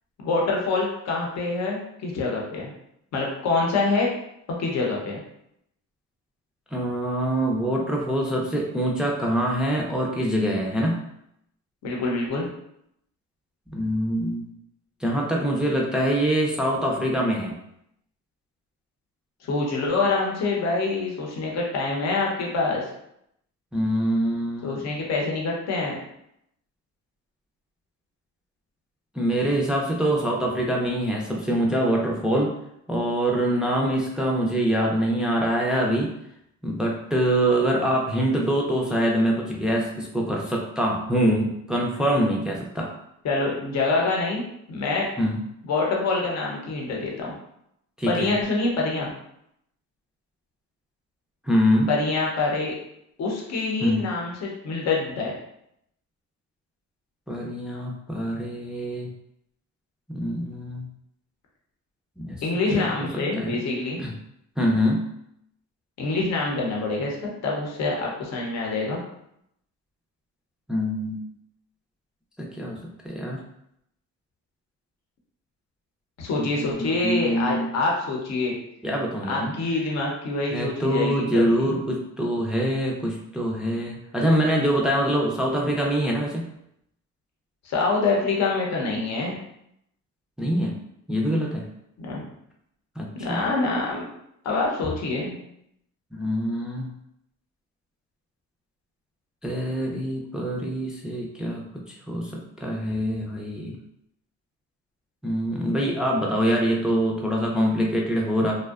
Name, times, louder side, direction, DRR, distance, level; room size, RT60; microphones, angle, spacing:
voice 1, 0.2-2.7 3.1-4.1 4.6-5.2 11.8-12.5 19.5-22.9 24.6-26.0 43.2-44.4 44.7-45.0 45.7-47.3 48.1-49.1 51.9-52.7 53.2-55.3 62.4-64.0 66.0-67.2 67.4-69.0 76.2-78.5 79.3-81.7 87.6-89.4 92.0-92.2 93.2-94.1 94.4-95.4, left 3 dB, 60° left, -2 dB, 0.7 m, -25 dB
voice 2, 6.7-11.0 13.7-14.5 15.0-17.5 23.7-24.8 29.2-32.5 32.9-36.1 36.6-42.9 45.2-45.4 48.0-48.4 51.5-51.9 53.8-54.1 57.3-59.1 60.1-60.9 62.2-62.4 62.7-62.9 63.1-63.6 64.0-64.1 64.6-65.0 70.7-71.2 72.4-73.4 76.4-77.7 78.8-79.5 80.5-86.5 90.4-90.8 91.1-91.7 93.0-93.4 96.1-96.9 99.4-101.6 102.1-103.8 105.2-108.5, equal, 5° right, -2 dB, 0.4 m, -24 dB
2.6 x 2.1 x 2.3 m, 0.77 s
cardioid pair, 90°, 30 cm